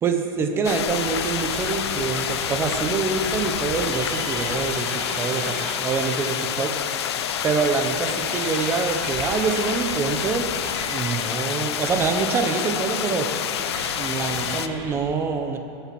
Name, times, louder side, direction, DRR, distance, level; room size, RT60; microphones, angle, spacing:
voice 1, 0.0-6.7 7.4-10.5 10.8-13.3 14.0-15.6, right 5 dB, 20° right, 5 dB, 1.2 m, -25 dB
sound 1, 0.6-14.7, left 10 dB, 85° left, 0.7 m, -28 dB
sound 2, 1.0-14.9, right 2 dB, 35° right, 3.1 m, -36 dB
21.5 x 8.0 x 6.2 m, 2.5 s
supercardioid pair, 160°, 13 cm